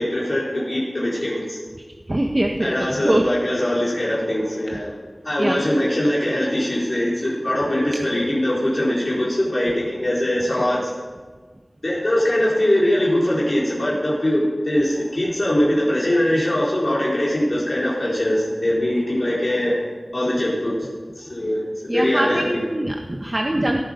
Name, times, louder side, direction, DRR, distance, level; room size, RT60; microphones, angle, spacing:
voice 1, 0.0-1.6 2.6-5.0 5.2-10.9 11.8-19.7 20.1-20.7 21.2-22.6, left 1 dB, 55° left, -8 dB, 4.3 m, -22 dB
voice 2, 2.1-2.7 3.0-3.2 5.4-5.6 21.9-23.8, right 1 dB, 35° right, 1 dB, 1.3 m, -22 dB
17.5 x 10.5 x 5.2 m, 1.4 s
wide cardioid pair, 45°, 0 cm